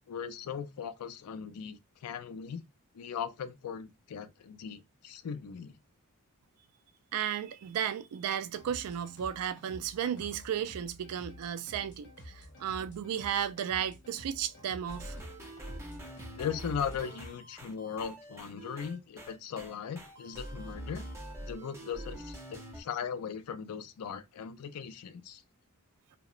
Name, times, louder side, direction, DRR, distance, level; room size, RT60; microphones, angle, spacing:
voice 1, 0.1-2.6 2.9-5.8 16.4-21.0 21.4-25.4, left 7 dB, 85° left, 0.4 m, -38 dB
voice 2, 7.1-15.2, right 9 dB, 85° right, 0.3 m, -34 dB
sound 1, 8.5-17.3, left 1 dB, 55° left, 0.9 m, -51 dB
sound 2, 14.9-22.8, right 1 dB, 10° right, 0.5 m, -44 dB
2.8 x 2.1 x 2.4 m
head